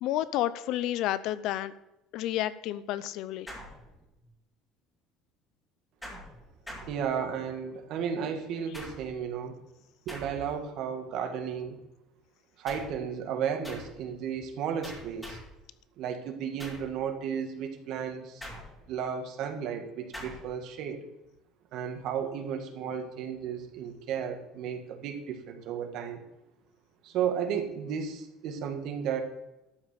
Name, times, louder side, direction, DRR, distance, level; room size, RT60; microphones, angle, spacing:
voice 1, 0.0-1.7 2.1-3.5, left 13 dB, 65° left, 16 dB, 0.6 m, -30 dB
sound 1, 3.5-4.3 6.0-7.5 8.7-9.3 10.1-10.7 12.7-13.1 13.6-14.1 14.8-15.6 16.6-17.0 18.4-19.0 20.1-20.6, equal, 5° left, 2.7 m, -45 dB
voice 2, 6.9-9.6 10.1-11.8 12.6-15.4 16.0-18.5 18.9-21.0 21.7-26.2 27.0-29.2, right 7 dB, 60° right, 5 dB, 1.9 m, -34 dB
12.5 x 5.1 x 8.1 m, 0.93 s
cardioid pair, 130°, 0 cm